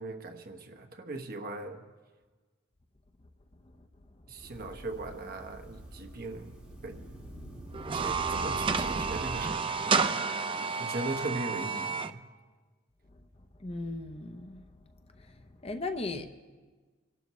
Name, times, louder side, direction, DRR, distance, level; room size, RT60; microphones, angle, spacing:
voice 1, 0.0-1.9 4.3-7.1 7.9-12.2, right 2 dB, 50° right, 1.1 m, -39 dB
sound 1, 4.4-9.4, right 1 dB, 5° right, 3.9 m, -44 dB
sound 2, 7.7-12.1, right 5 dB, 25° right, 0.4 m, -30 dB
voice 2, 13.6-14.6 15.2-16.3, left 2 dB, 30° left, 0.7 m, -37 dB
27.0 x 12.0 x 3.1 m
head